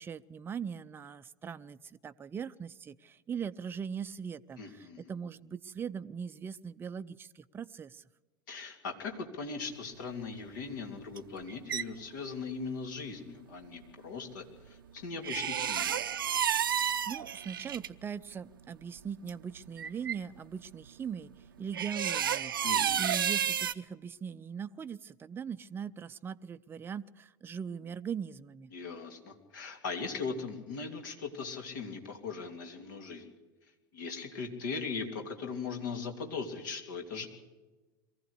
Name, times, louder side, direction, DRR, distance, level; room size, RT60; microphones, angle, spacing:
voice 1, 0.0-8.0 16.7-21.3 21.6-28.7, right 7 dB, 20° right, 11 dB, 0.6 m, -40 dB
voice 2, 4.6-5.1 8.5-16.0 22.6-23.0 28.7-33.3 33.9-37.3, left 4 dB, 60° left, 4 dB, 2.9 m, -39 dB
sound 1, 11.2-11.8 15.2-17.9 19.0-19.1 19.3-19.4 19.8-20.2 21.7-23.7, right 9 dB, 75° right, 0.6 m, -31 dB
22.5 x 15.0 x 8.3 m, 1.2 s
figure-of-eight pair, 85°, 12 cm